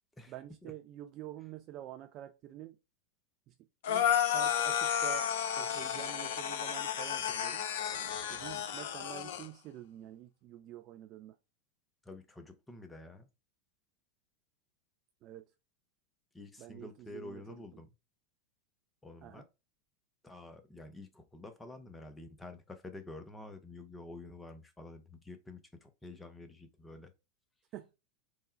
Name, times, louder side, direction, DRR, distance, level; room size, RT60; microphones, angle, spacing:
voice 1, 0.3-2.8 3.5-3.6 3.9-5.3 5.6-7.6 8.3-11.4 15.2-15.4 16.6-17.4 19.2-19.4 27.7-27.9, right 13 dB, 35° right, 0.3 m, -47 dB
sound 1, 3.8-9.5, left 9 dB, 55° left, 0.4 m, -32 dB
voice 2, 12.1-13.3 16.3-17.9 19.0-19.5 20.2-27.1, left 2 dB, 10° left, 0.6 m, -49 dB
3.6 x 2.1 x 4.2 m
figure-of-eight pair, 90°, 0 cm